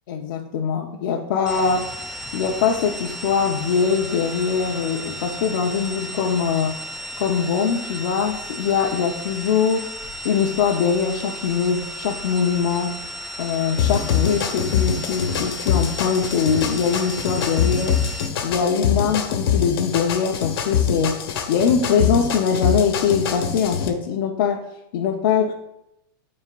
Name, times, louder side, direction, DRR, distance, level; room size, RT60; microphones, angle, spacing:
voice 1, 0.1-1.9 2.3-6.8 7.2-9.9 10.2-13.0 13.4-18.0 18.4-21.2 21.5-24.6 24.9-25.5, left 6 dB, 60° left, -1 dB, 0.8 m, -22 dB
sound 1, 1.5-18.3, equal, ahead, 0.6 m, -34 dB
sound 2, 13.8-23.9, left 8 dB, 85° left, 1.3 m, -24 dB
13.0 x 4.4 x 2.5 m, 0.82 s
supercardioid pair, 165°, 12 cm